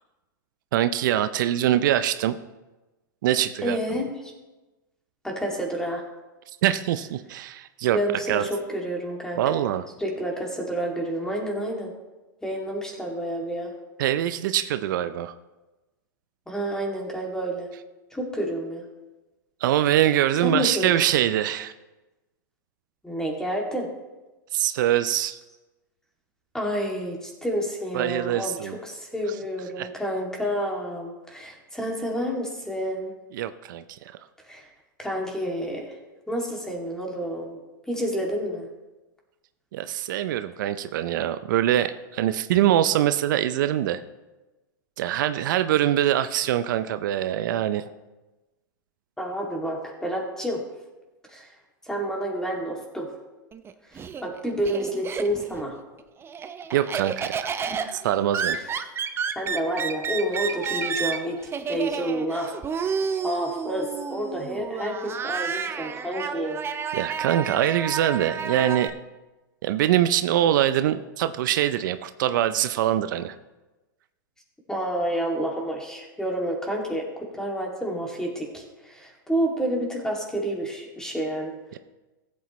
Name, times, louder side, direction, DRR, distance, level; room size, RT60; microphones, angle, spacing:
voice 1, 0.7-2.4 3.2-3.8 6.6-8.0 8.3-8.5 9.4-9.8 14.0-15.3 19.6-21.7 24.5-25.4 27.9-28.8 29.8-29.9 33.3-33.8 39.7-44.0 45.0-47.9 56.7-57.5 58.0-58.6 66.9-69.0 69.6-73.4 81.7-81.8, right 12 dB, 65° right, 11 dB, 0.5 m, -23 dB
voice 2, 3.6-4.3 5.2-6.0 7.9-9.7 10.0-11.9 12.4-13.7 16.5-17.7 18.1-18.8 20.4-20.9 23.0-23.9 26.5-33.1 34.4-34.7 35.0-36.0 36.3-37.6 37.9-38.7 49.2-50.6 51.3-51.5 51.9-53.1 53.9-55.7 59.4-61.4 61.7-66.6 74.7-81.5, equal, 5° left, -1 dB, 2.4 m, -29 dB
Laughter, 53.5-55.6 56.0-68.9, right 6 dB, 20° right, 0.7 m, -31 dB
15.0 x 8.4 x 3.1 m, 1.1 s
hypercardioid pair, 110°, 11 cm